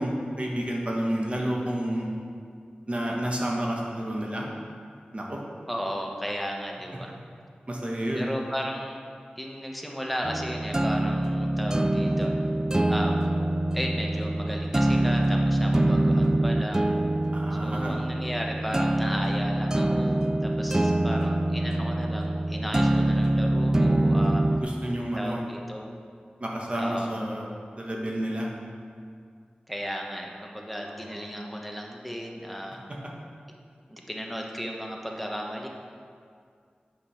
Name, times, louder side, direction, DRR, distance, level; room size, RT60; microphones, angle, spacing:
voice 1, 0.0-2.1 2.9-4.5 5.1-5.4 7.7-8.3 17.3-18.0 24.5-25.4 26.4-27.4 27.8-28.5 30.9-31.2, right 1 dB, 40° right, -2 dB, 1.3 m, -30 dB
voice 2, 5.7-7.1 8.1-9.0 9.3-12.3 12.9-13.2 13.7-16.9 17.5-24.4 25.1-25.9 26.7-27.1 29.7-32.8 33.9-35.7, equal, ahead, 0 dB, 1.0 m, -35 dB
sound 1, 10.2-24.6, right 1 dB, 20° right, 0.3 m, -24 dB
8.4 x 5.4 x 5.7 m, 2.2 s
wide cardioid pair, 80°, 3 cm